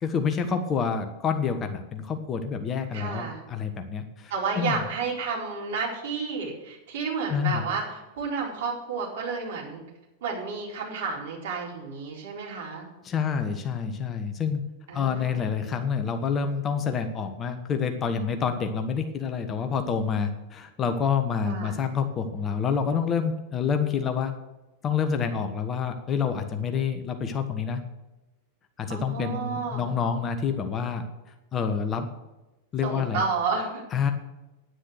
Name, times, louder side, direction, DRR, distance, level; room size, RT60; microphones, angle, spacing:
voice 1, 0.0-4.8 7.3-7.6 13.0-14.6 14.9-24.3 24.8-27.8 28.8-31.0 31.5-32.1 32.7-33.2 33.9-34.1, left 6 dB, 25° left, 7 dB, 1.3 m, -28 dB
voice 2, 2.9-3.4 4.3-9.8 10.2-12.9 14.9-15.4 21.4-21.8 28.9-30.0 32.8-33.8, right 5 dB, 55° right, -2 dB, 4.2 m, -31 dB
9.9 x 9.8 x 6.6 m, 1.0 s
figure-of-eight pair, 90°, 0 cm